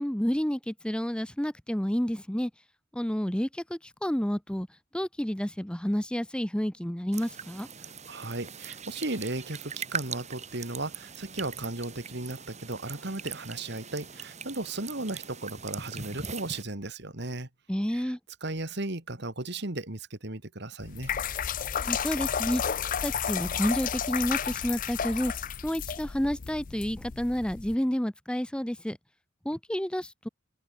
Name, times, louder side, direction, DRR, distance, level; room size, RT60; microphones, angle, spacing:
voice 1, 0.0-2.5 2.9-4.7 4.9-7.7 17.7-18.2 21.8-22.6 23.0-25.3 25.6-29.0 29.4-30.3, equal, 5° left, 0.7 m, -30 dB
sound 1, 7.1-16.6, right 6 dB, 35° right, 6.7 m, -41 dB
voice 2, 8.1-17.5 17.9-18.1 18.4-21.1, right 2 dB, 55° right, 2.7 m, -35 dB
sound 2, 20.8-27.7, left 8 dB, 40° left, 0.5 m, -32 dB
open air
head